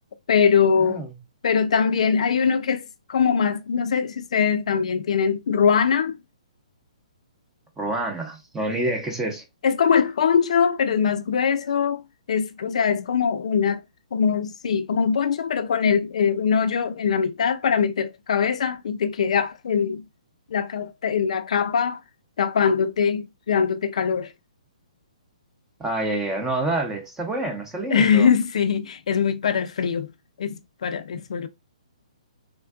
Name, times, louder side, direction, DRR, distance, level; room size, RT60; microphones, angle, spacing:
voice 1, 0.3-1.0 1.4-6.1 9.6-12.0 12.3-13.8 14.1-20.0 20.5-22.0 22.4-24.3 27.9-30.1 30.4-31.5, left 6 dB, 65° left, 0.4 m, -22 dB
voice 2, 0.8-1.1 7.8-9.4 25.8-28.3, right 2 dB, 10° right, 0.8 m, -27 dB
3.5 x 2.2 x 2.4 m
hypercardioid pair, 145°, 4 cm